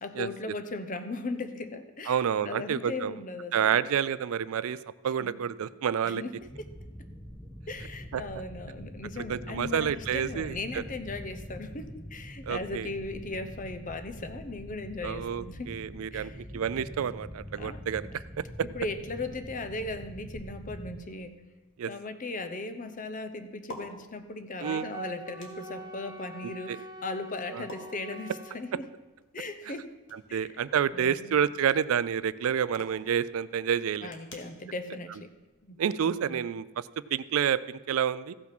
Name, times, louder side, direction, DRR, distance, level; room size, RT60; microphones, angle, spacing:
voice 1, 0.0-2.2 2.4-3.8 5.2-5.3 6.0-6.3 6.6-6.7 7.7-15.7 16.1-16.4 17.6-17.8 18.7-21.3 21.9-28.8 29.3-29.9 30.3-30.5 30.9-31.3 34.0-35.3 35.6-35.8 36.1-36.4, left 2 dB, 40° left, 9 dB, 0.8 m, -38 dB
voice 2, 2.1-3.1 3.5-4.8 5.0-6.2 8.1-8.2 9.3-10.8 12.4-12.9 15.0-18.7 21.8-21.9 24.6-24.9 26.7-26.8 27.5-27.7 30.1-34.1 35.8-38.3, right 8 dB, 80° right, 17 dB, 0.4 m, -29 dB
sound 1, 6.4-21.0, equal, 15° left, 1.0 m, -44 dB
sound 2, 21.0-36.2, left 1 dB, 60° left, 1.8 m, -54 dB
Wind instrument woodwind instrument, 24.6-28.6, right 1 dB, 20° right, 1.8 m, -44 dB
15.0 x 5.9 x 6.0 m, 1.1 s
head